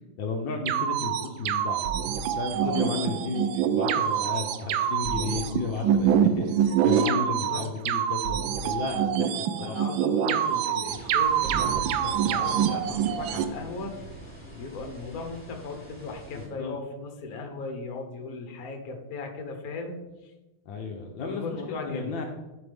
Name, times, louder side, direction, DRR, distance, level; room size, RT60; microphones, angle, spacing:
voice 1, 0.2-1.9 2.3-9.3 9.6-9.8 16.3-16.8 20.6-22.2, left 4 dB, 70° left, 2 dB, 1.5 m, -33 dB
sound 1, 0.7-13.4, right 8 dB, 75° right, 1.3 m, -25 dB
voice 2, 2.6-2.9 7.5-7.6 8.9-9.0 9.6-14.0 14.5-20.0 21.2-22.1, left 3 dB, 50° left, 3 dB, 1.5 m, -37 dB
sound 2, 10.8-16.5, equal, 5° left, 2.6 m, -43 dB
11.5 x 5.2 x 3.5 m, 1.1 s
omnidirectional pair, 2.3 m